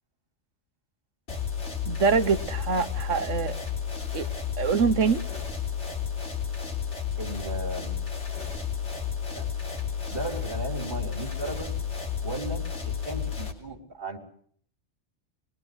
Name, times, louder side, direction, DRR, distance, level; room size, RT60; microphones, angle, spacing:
sound 1, 1.3-13.5, left 7 dB, 65° left, 3.5 m, -32 dB
voice 1, 1.9-3.6 4.1-4.3 4.6-5.2, right 5 dB, 75° right, 1.5 m, -24 dB
voice 2, 7.2-8.0 9.3-9.5 10.1-11.7 12.2-12.6 13.0-14.2, right 2 dB, 45° right, 4.1 m, -35 dB
23.5 x 20.5 x 7.8 m
omnidirectional pair, 1.3 m